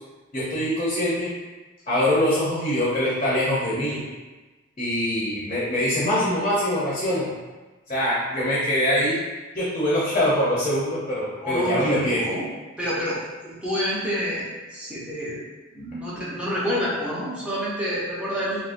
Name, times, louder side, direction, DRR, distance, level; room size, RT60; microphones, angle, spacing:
voice 1, 0.3-1.3 1.9-4.0 4.8-7.3 7.9-9.2 9.5-12.2, left 1 dB, 35° left, -8 dB, 0.7 m, -23 dB
voice 2, 11.4-12.5 12.8-15.4 15.7-18.6, equal, 5° right, -9 dB, 0.7 m, -28 dB
3.5 x 2.0 x 2.5 m, 1.2 s
head